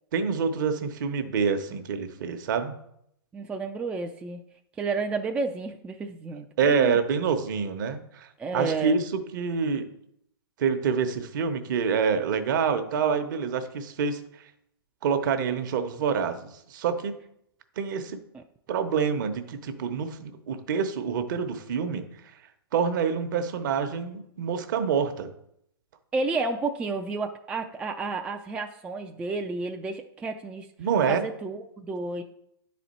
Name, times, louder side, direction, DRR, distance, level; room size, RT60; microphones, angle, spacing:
voice 1, 0.1-2.8 6.6-9.9 10.6-14.2 15.0-17.2 17.8-18.2 18.7-22.1 22.7-25.3 30.8-31.2, right 6 dB, 50° right, 8 dB, 0.9 m, -27 dB
voice 2, 3.3-4.4 4.8-7.0 8.4-9.0 26.1-30.7 31.1-32.2, right 3 dB, 10° right, 4 dB, 0.3 m, -31 dB
10.0 x 4.2 x 4.2 m, 0.74 s
hypercardioid pair, 125°, 13 cm